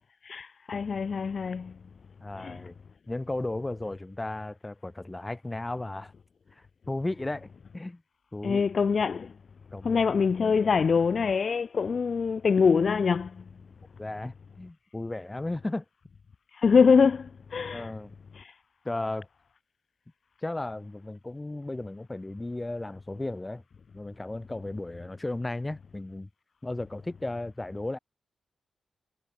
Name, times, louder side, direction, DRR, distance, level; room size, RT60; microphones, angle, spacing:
voice 1, 0.3-1.7 2.4-2.6 8.4-9.3 9.8-13.3 16.6-17.9 18.4-18.5, left 5 dB, 60° left, 0.7 m, -24 dB
voice 2, 2.2-2.7 3.1-6.1 6.9-8.0 8.3-8.7 9.7-10.0 14.0-15.8 17.7-18.2 18.8-19.3 20.4-23.6 23.9-26.3 26.6-28.0, left 2 dB, 20° left, 1.3 m, -35 dB
cardioid pair, 55°, 0 cm